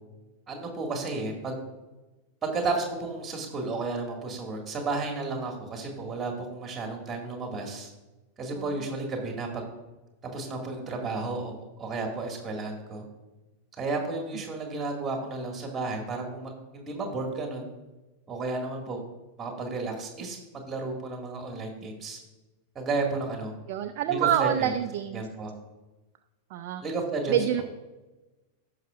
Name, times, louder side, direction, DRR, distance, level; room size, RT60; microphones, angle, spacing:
voice 1, 0.5-1.6 2.4-7.9 8.4-9.6 10.3-11.5 11.8-13.0 13.8-17.7 18.3-19.0 19.4-22.2 22.8-23.5 24.1-24.7 25.1-25.5 26.8-27.6, right 3 dB, 20° right, 1 dB, 2.0 m, -32 dB
voice 2, 23.7-25.2 26.5-26.8 27.3-27.6, right 10 dB, 45° right, 8 dB, 0.5 m, -26 dB
16.5 x 5.8 x 2.5 m, 1.1 s
figure-of-eight pair, 90°, 0 cm